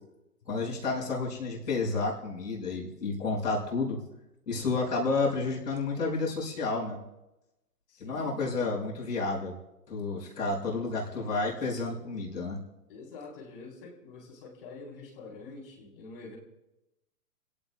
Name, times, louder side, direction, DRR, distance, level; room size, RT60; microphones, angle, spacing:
voice 1, 0.5-4.0 4.5-7.0 8.0-9.5 9.9-12.6, left 3 dB, 90° left, -3 dB, 6.2 m, -30 dB
voice 2, 7.9-8.5 12.9-16.4, left 3 dB, 35° left, -1 dB, 4.3 m, -46 dB
29.5 x 17.0 x 2.4 m, 0.94 s
hypercardioid pair, 175°, 47 cm